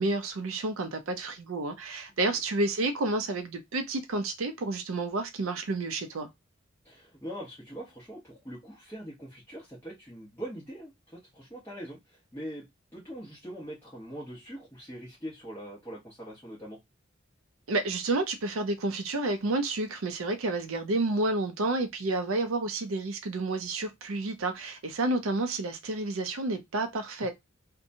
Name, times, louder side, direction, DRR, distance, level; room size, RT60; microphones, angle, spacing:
voice 1, 0.0-6.3 17.7-27.3, right 2 dB, 85° right, 0.5 m, -30 dB
voice 2, 6.8-12.7 12.9-16.8, equal, 10° left, 0.8 m, -42 dB
2.8 x 2.2 x 2.6 m
head